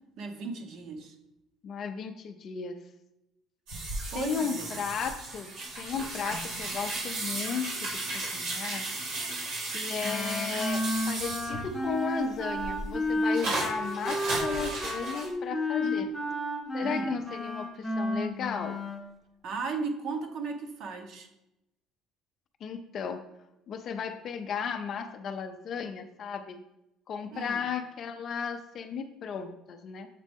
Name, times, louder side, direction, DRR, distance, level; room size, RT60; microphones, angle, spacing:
voice 1, 0.2-1.1 4.1-4.7 15.8-16.1 16.8-17.1 19.4-21.3 27.3-27.6, right 4 dB, 45° right, 5 dB, 0.8 m, -36 dB
voice 2, 1.6-2.8 4.1-8.9 9.6-16.1 16.7-18.8 22.6-23.2 23.7-26.6 27.1-30.1, left 6 dB, 35° left, 8 dB, 0.4 m, -35 dB
sound 1, 3.7-11.9 12.3-15.3, right 2 dB, 85° right, 2.2 m, -35 dB
Wind instrument woodwind instrument, 10.0-19.0, left 1 dB, ahead, 0.8 m, -32 dB
7.4 x 4.1 x 3.5 m, 0.88 s
cardioid pair, 175°, 0 cm